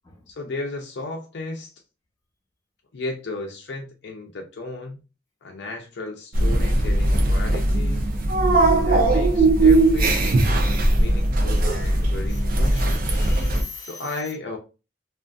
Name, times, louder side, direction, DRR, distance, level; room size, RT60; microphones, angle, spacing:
voice 1, 0.3-1.7 2.9-5.0 5.4-8.1 8.8-13.1 13.9-14.6, left 2 dB, 70° left, 0.5 m, -35 dB
sound 1, 6.3-13.6, right 2 dB, 55° right, 0.5 m, -19 dB
voice 2, 7.0-7.7 8.0-8.9 10.7-10.8 11.1-11.2 11.5-11.7 12.3-14.1, left 3 dB, 20° left, 1.0 m, -45 dB
2.5 x 2.4 x 2.3 m
head